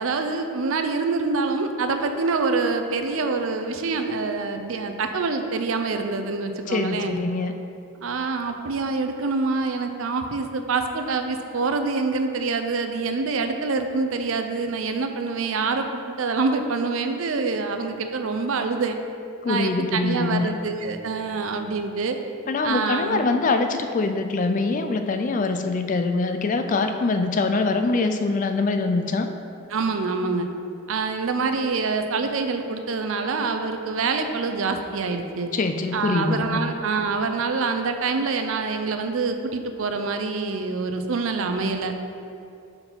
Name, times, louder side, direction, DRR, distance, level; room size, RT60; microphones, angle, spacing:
voice 1, 0.0-7.1 8.0-19.0 19.5-22.2 22.6-23.2 29.7-30.5 30.9-35.5 35.9-41.9, right 4 dB, 65° right, 6 dB, 0.5 m, -26 dB
voice 2, 6.7-7.5 19.4-20.5 22.5-29.3 35.5-36.6, left 3 dB, 35° left, 7 dB, 0.3 m, -24 dB
5.2 x 4.7 x 5.6 m, 2.5 s
head